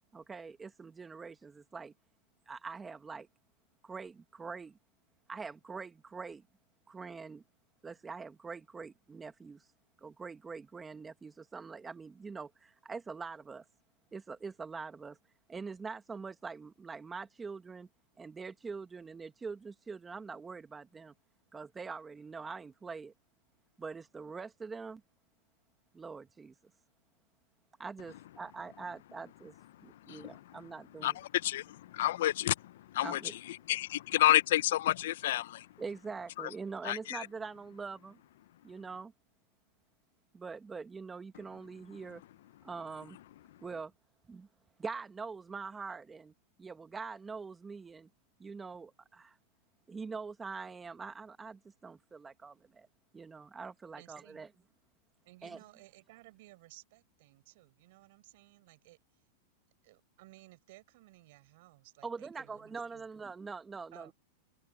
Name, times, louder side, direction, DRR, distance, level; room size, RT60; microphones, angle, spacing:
voice 1, 0.1-1.9 2.5-3.3 3.8-4.8 5.3-6.4 6.9-7.4 7.8-9.7 10.0-13.6 14.1-15.2 15.5-17.9 18.2-21.1 21.5-23.1 23.8-25.0 25.9-26.5 27.8-29.5 29.8-31.2 33.0-33.3 35.8-38.2 38.6-39.1 40.3-42.2 42.6-43.2 43.6-43.9 44.3-44.5 44.8-46.3 46.6-48.1 48.4-49.4 49.9-52.9 53.1-54.5 55.4-55.6 62.0-64.1, right 4 dB, 15° right, 1.8 m, -44 dB
voice 2, 31.4-33.2 33.7-35.7 36.4-36.5 36.8-37.3, left 14 dB, 75° left, 0.6 m, -30 dB
voice 3, 54.0-54.5 55.2-59.0 59.8-63.1 63.9-64.1, right 20 dB, 65° right, 5.1 m, -58 dB
hypercardioid pair, 125°, 0 cm